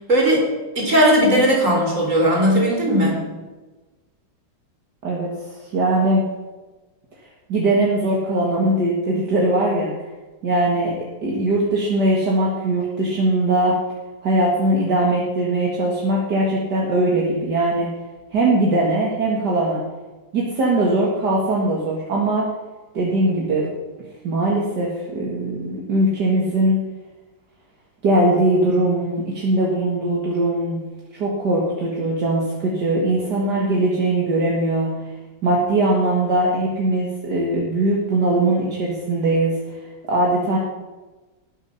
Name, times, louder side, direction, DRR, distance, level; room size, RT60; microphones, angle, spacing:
voice 1, 0.1-0.5 0.8-3.2, equal, 45° right, -1 dB, 4.4 m, -17 dB
voice 2, 5.7-6.2 7.5-9.9 10.4-13.8 14.2-17.9 18.3-19.8 20.3-22.5 22.9-23.7 24.2-26.8 28.0-30.8 31.1-34.9 35.4-39.6 40.1-40.6, right 1 dB, 65° right, -3 dB, 2.5 m, -20 dB
19.0 x 8.0 x 5.8 m, 1.2 s
omnidirectional pair, 2.0 m